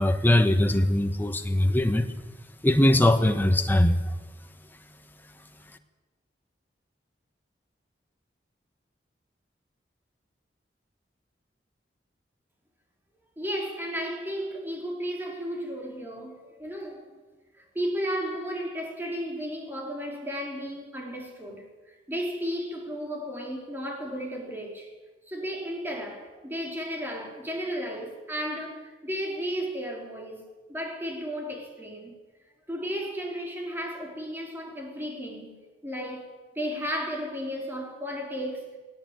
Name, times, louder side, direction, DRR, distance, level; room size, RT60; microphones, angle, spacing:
voice 1, 0.0-2.1 2.6-4.0, left 1 dB, 10° left, 1.4 m, -21 dB
voice 2, 13.4-17.2 17.6-24.9 25.3-32.1 32.7-38.8, equal, 10° right, 4.2 m, -34 dB
19.5 x 17.5 x 9.1 m
head